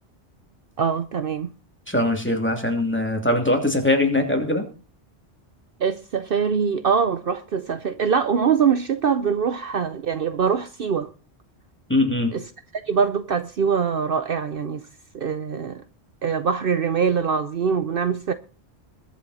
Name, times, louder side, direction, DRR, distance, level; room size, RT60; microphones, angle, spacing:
voice 1, 0.8-1.5 5.8-11.1 12.3-12.4 12.7-14.9 15.1-15.8 16.2-18.3, right 6 dB, 60° right, 0.9 m, -23 dB
voice 2, 1.9-4.6 11.9-12.4, left 1 dB, 10° left, 2.7 m, -21 dB
21.5 x 7.3 x 4.2 m
omnidirectional pair, 1.1 m